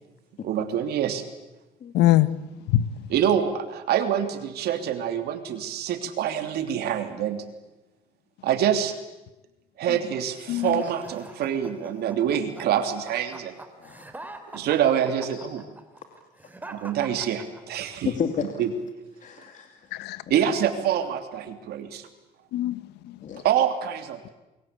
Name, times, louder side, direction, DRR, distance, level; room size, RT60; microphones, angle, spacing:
voice 1, 0.4-1.2 3.1-7.4 8.4-8.9 9.8-13.6 14.5-15.7 16.7-18.1 18.6-18.7 20.3-22.1 23.4-24.3, right 9 dB, 70° right, 7 dB, 3.1 m, -26 dB
voice 2, 1.9-2.3 2.7-2.8 9.9-10.0 10.5-10.8 19.9-20.2 22.5-23.4, left 14 dB, 85° left, 15 dB, 1.4 m, -23 dB
sound 1, 10.5-18.0, right 2 dB, 10° right, 3.2 m, -43 dB
voice 3, 18.0-18.6 19.2-19.9 23.2-23.4, left 7 dB, 50° left, 5 dB, 2.7 m, -31 dB
29.0 x 23.0 x 8.5 m, 1.0 s
cardioid pair, 110°, 17 cm